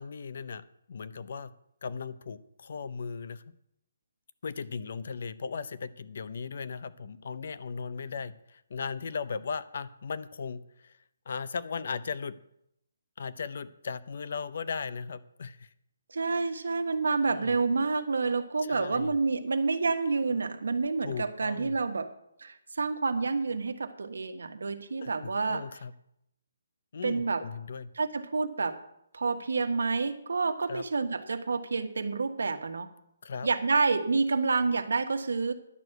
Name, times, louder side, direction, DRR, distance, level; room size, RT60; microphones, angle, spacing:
voice 1, 0.0-1.5 1.8-3.4 4.4-10.9 11.3-12.4 13.2-15.7 17.3-17.6 18.6-19.1 21.0-21.8 25.0-25.9 26.9-27.9 30.7-30.8 33.2-33.5, left 5 dB, 45° left, 15 dB, 0.6 m, -37 dB
voice 2, 16.1-22.1 22.4-25.6 27.0-27.4 27.9-28.8 29.1-32.9 33.4-35.5, right 4 dB, 85° right, 8 dB, 1.4 m, -28 dB
11.0 x 6.2 x 8.1 m, 0.77 s
hypercardioid pair, 175°, 0 cm